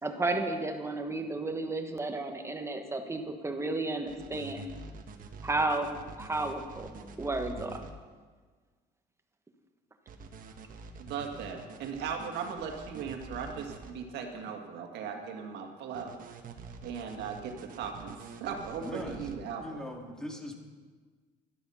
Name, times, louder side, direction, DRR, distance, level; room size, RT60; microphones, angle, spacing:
voice 1, 0.0-4.7 5.4-7.9, right 2 dB, 15° right, 5 dB, 1.5 m, -33 dB
sound 1, 4.1-7.9 10.1-13.9 15.9-19.4, right 4 dB, 55° right, 1.3 m, -46 dB
voice 2, 11.0-16.2 16.8-19.6, right 6 dB, 80° right, 3 dB, 1.9 m, -38 dB
voice 3, 18.8-19.3 19.6-20.5, equal, 5° left, 1 dB, 2.1 m, -40 dB
12.0 x 12.0 x 5.7 m, 1.5 s
cardioid pair, 110°, 17 cm